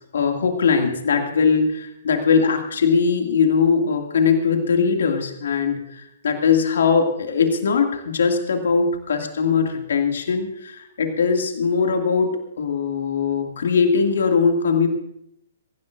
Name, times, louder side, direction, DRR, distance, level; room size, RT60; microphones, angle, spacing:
voice 1, 0.1-14.9, left 5 dB, 60° left, 4 dB, 2.3 m, -20 dB
24.0 x 15.5 x 2.6 m, 0.78 s
figure-of-eight pair, 120°, 0 cm